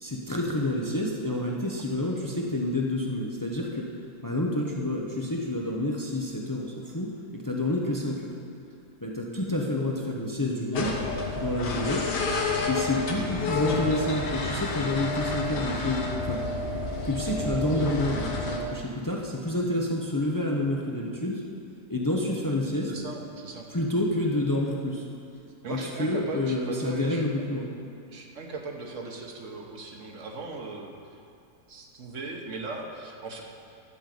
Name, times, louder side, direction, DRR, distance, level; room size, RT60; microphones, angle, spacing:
voice 1, 0.0-3.9 4.2-8.3 9.0-11.0 11.3-12.1 12.7-16.5 17.0-21.4 21.9-22.9 23.7-25.1 25.7-27.7, left 1 dB, 25° left, -1 dB, 0.4 m, -28 dB
sound 1, 10.7-18.6, left 3 dB, 85° left, 1.7 m, -30 dB
voice 2, 22.9-23.7 25.6-27.3 28.1-30.9 31.7-33.4, right 3 dB, 50° right, 1 dB, 1.4 m, -38 dB
11.0 x 5.3 x 7.6 m, 2.5 s
omnidirectional pair, 1.8 m